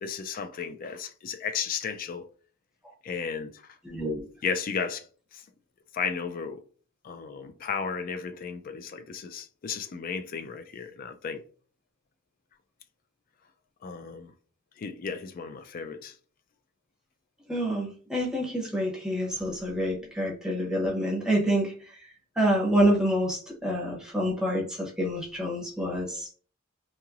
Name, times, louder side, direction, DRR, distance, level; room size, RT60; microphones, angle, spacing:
voice 1, 0.0-2.2 3.0-3.8 4.4-5.1 5.3-5.4 5.9-6.6 7.0-11.4 13.8-14.3 14.8-16.2, left 6 dB, 45° left, 0.3 m, -34 dB
voice 2, 3.8-4.2 17.5-22.0 22.4-26.3, equal, 5° right, 0.7 m, -27 dB
3.0 x 2.8 x 2.4 m
head